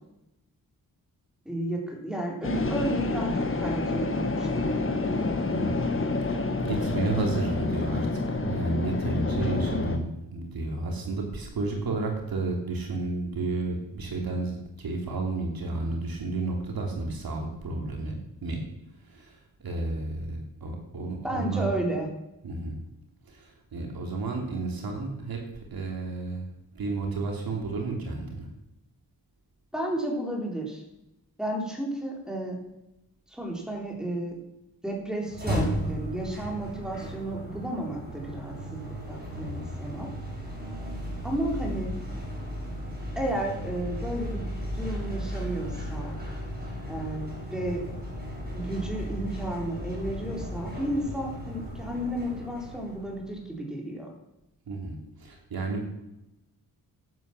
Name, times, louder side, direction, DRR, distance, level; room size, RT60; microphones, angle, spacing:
voice 1, 1.5-5.2 21.2-22.1 29.7-30.8 31.4-32.6 33.3-34.4 34.8-40.1 41.2-42.0 43.2-44.4 44.7-46.2 46.9-47.8 48.5-54.1, right 1 dB, ahead, 0 dB, 3.8 m, -32 dB
sound 1, 2.4-10.0, left 3 dB, 35° left, 1.4 m, -28 dB
voice 2, 6.3-8.1 8.4-10.1 10.3-18.1 18.4-18.6 19.1-21.7 22.4-22.7 23.3-25.4 25.7-26.5 26.7-28.5 54.7-55.9, right 3 dB, 75° right, 1 dB, 3.1 m, -32 dB
sound 2, 35.2-53.4, equal, 25° right, 6.1 m, -35 dB
11.0 x 9.5 x 7.3 m, 0.90 s
wide cardioid pair, 105°, 36 cm